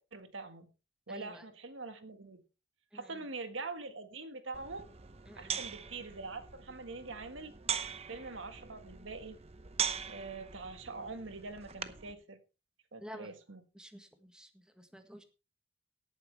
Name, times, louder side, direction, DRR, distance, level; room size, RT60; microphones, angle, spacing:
voice 1, 0.1-0.7 1.1-2.4 2.9-4.9 5.4-7.5 8.1-9.4 10.1-12.4 12.9-13.6, right 3 dB, 75° right, 8 dB, 1.6 m, -44 dB
voice 2, 1.1-1.4 2.9-3.3 5.3-5.6 13.0-13.3 13.7-15.2, equal, 5° right, 6 dB, 1.6 m, -51 dB
sound 1, 4.5-12.1, right 7 dB, 35° right, 0.8 m, -41 dB
17.5 x 9.1 x 3.3 m, 0.32 s
head